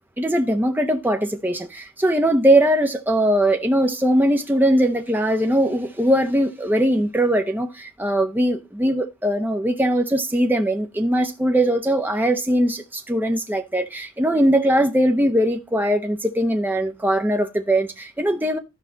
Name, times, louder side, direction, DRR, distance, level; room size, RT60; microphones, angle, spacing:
voice 1, 0.2-18.6, right 1 dB, 10° right, 0.9 m, -20 dB
13.0 x 4.9 x 3.9 m
head